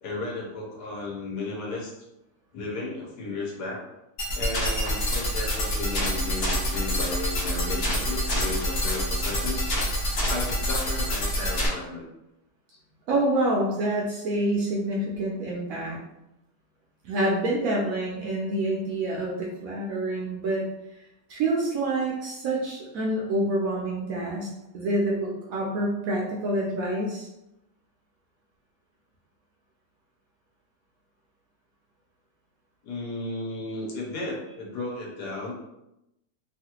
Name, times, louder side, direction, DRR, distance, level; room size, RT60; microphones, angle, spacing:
voice 1, 0.0-1.9 2.5-3.8 4.3-9.7 10.2-12.0 32.8-35.5, left 2 dB, 75° left, -2 dB, 1.3 m, -34 dB
sound 1, 4.2-11.7, equal, 50° left, 0.8 m, -27 dB
voice 2, 13.1-16.0 17.0-20.6 21.3-24.5 24.7-27.3, right 1 dB, 70° right, -2 dB, 0.8 m, -27 dB
3.1 x 2.4 x 2.8 m, 0.88 s
omnidirectional pair, 1.9 m